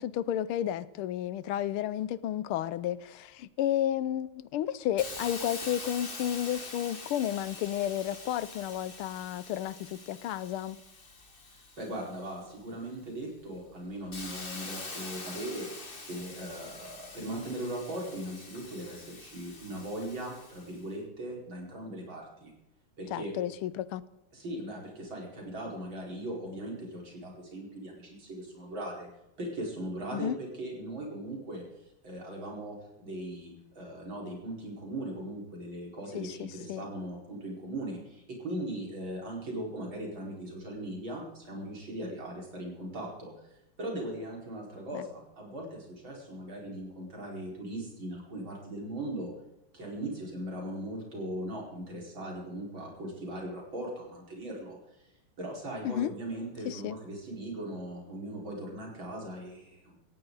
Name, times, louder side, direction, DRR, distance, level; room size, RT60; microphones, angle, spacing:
voice 1, 0.0-10.8 23.1-24.0 30.1-30.4 36.1-36.9 44.9-45.0 55.8-56.1 56.6-56.9, left 11 dB, 80° left, 1.6 m, -32 dB
Hiss, 5.0-12.5 13.1-20.8, left 3 dB, 25° left, 1.8 m, -45 dB
voice 2, 11.5-15.7 16.0-22.5 23.0-23.3 24.3-29.1 29.4-49.3 49.7-55.1 55.4-60.0, right 1 dB, 60° right, 5.5 m, -39 dB
18.5 x 15.0 x 4.0 m
omnidirectional pair, 2.4 m